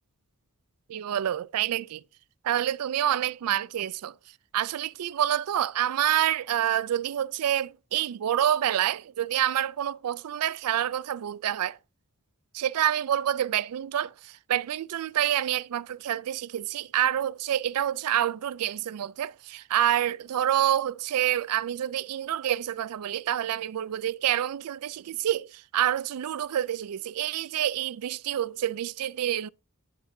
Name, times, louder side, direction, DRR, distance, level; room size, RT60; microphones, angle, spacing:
voice 1, 0.9-2.0 2.4-4.1 4.5-11.8 12.5-29.5, right 11 dB, 85° right, 0.4 m, -27 dB
10.0 x 8.7 x 2.7 m
head